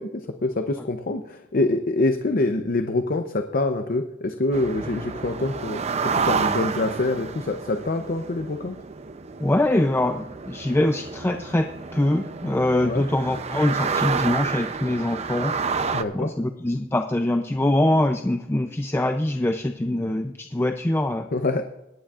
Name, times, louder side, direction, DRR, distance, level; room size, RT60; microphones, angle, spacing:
voice 1, 0.0-8.8 12.8-13.0 15.9-16.3 21.3-21.6, left 2 dB, 50° left, 7 dB, 0.7 m, -25 dB
sound 1, 4.5-16.0, right 5 dB, 35° right, 0.5 m, -30 dB
voice 2, 9.4-11.7 11.9-15.5 16.1-21.3, left 1 dB, 15° left, 6 dB, 0.5 m, -23 dB
23.5 x 10.0 x 2.4 m, 0.97 s
head